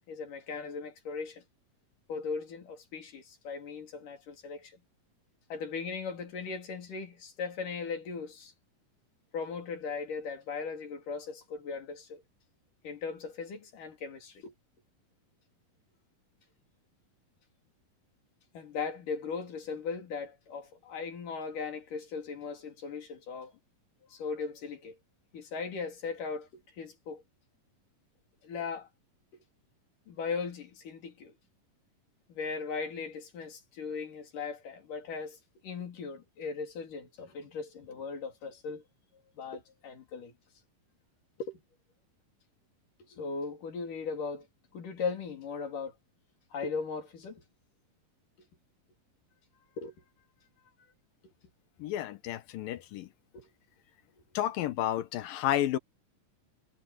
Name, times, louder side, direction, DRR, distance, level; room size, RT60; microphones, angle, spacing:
voice 1, 0.1-1.4 2.1-4.8 5.5-8.5 9.3-12.2 12.8-14.5 18.5-23.6 24.1-25.0 25.3-27.2 28.4-28.9 30.1-31.3 32.3-35.4 35.6-38.8 39.3-40.3 41.4-41.6 43.0-44.5 44.7-45.9 46.5-47.4 49.8-49.9 53.3-53.5, left 5 dB, 70° left, 5.0 m, -38 dB
voice 2, 51.8-53.1 54.3-55.8, left 12 dB, 85° left, 2.8 m, -31 dB
omnidirectional pair, 3.9 m